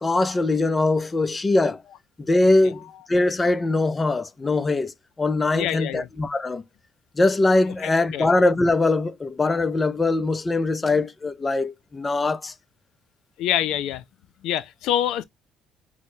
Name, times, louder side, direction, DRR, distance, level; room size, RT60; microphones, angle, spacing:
voice 1, 0.0-1.8 2.3-6.6 7.2-12.5, left 2 dB, 20° left, 0.5 m, -22 dB
voice 2, 5.5-6.1 8.1-8.3 13.4-14.0 14.4-15.2, left 11 dB, 80° left, 0.4 m, -25 dB
6.1 x 2.1 x 2.7 m
cardioid pair, 110°, 0 cm